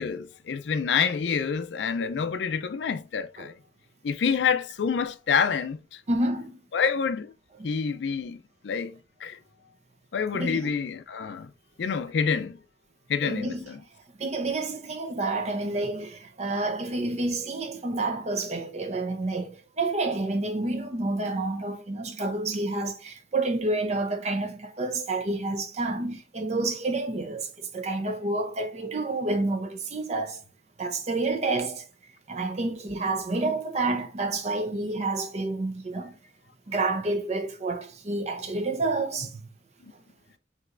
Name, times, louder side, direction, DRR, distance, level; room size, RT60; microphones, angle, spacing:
voice 1, 0.0-3.5 4.0-6.0 6.7-7.3 7.6-8.4 8.6-9.4 10.1-11.5 11.8-12.6 13.1-13.8, left 6 dB, 80° left, 0.4 m, -27 dB
voice 2, 6.1-6.6 7.5-7.7 10.3-10.7 13.2-13.6 14.2-30.4 30.8-31.9 32.3-36.2 36.7-39.4, right 2 dB, 40° right, 0.6 m, -29 dB
5.3 x 3.0 x 2.5 m
head